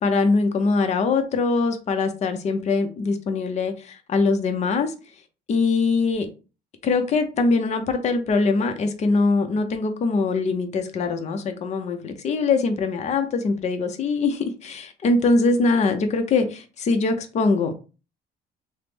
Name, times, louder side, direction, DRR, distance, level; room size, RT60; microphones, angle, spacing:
voice 1, 0.0-4.9 5.5-6.3 6.8-17.8, left 3 dB, 40° left, 0.6 m, -22 dB
3.0 x 2.0 x 3.4 m
cardioid pair, 110°, 17 cm